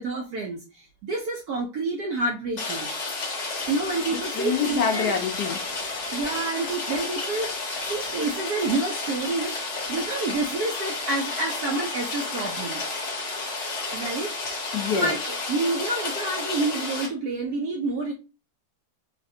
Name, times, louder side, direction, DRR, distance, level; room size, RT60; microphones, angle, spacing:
voice 1, 0.0-2.9 3.7-5.1 6.1-7.6 7.9-12.8 13.9-14.3 14.9-18.1, right 3 dB, 75° right, 2 dB, 0.8 m, -28 dB
Rain, 2.6-17.1, left 3 dB, 45° left, 1.1 m, -31 dB
voice 2, 4.3-5.6 14.7-15.1, left 6 dB, 75° left, 3 dB, 1.0 m, -26 dB
4.0 x 2.1 x 2.6 m, 0.32 s
omnidirectional pair, 2.1 m